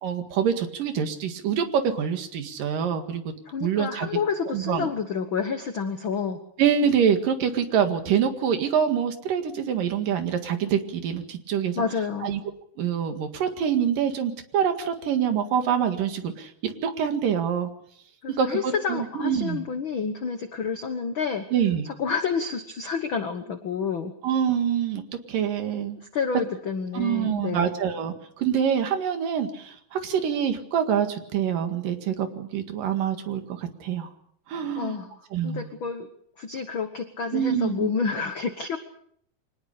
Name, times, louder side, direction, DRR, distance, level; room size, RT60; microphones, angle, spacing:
voice 1, 0.0-3.2 3.6-4.1 4.5-4.9 6.6-11.8 12.2-12.4 12.8-17.7 18.4-19.7 21.5-21.9 24.2-25.0 25.3-26.0 26.9-34.1 34.5-35.0 35.3-35.7 37.3-37.9, right 8 dB, 70° right, 7 dB, 3.5 m, -25 dB
voice 2, 3.4-6.4 11.8-12.4 18.2-21.5 21.8-24.1 26.1-27.7 34.8-35.1 35.4-36.1 36.4-38.8, left 5 dB, 60° left, 8 dB, 1.4 m, -29 dB
25.0 x 19.5 x 6.7 m, 0.66 s
omnidirectional pair, 4.0 m